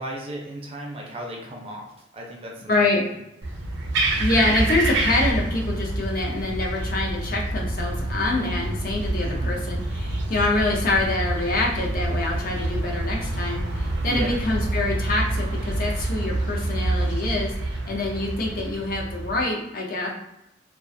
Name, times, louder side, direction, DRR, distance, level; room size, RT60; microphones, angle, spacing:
voice 1, 0.0-1.9 2.1-2.9 9.2-9.6 14.1-14.4, right 1 dB, 30° right, 0 dB, 0.4 m, -35 dB
voice 2, 2.7-3.1 4.2-20.1, left 2 dB, 50° left, -1 dB, 0.5 m, -26 dB
sound 1, 3.4-19.4, right 2 dB, 90° right, 0.5 m, -27 dB
2.3 x 2.2 x 2.5 m, 0.86 s
head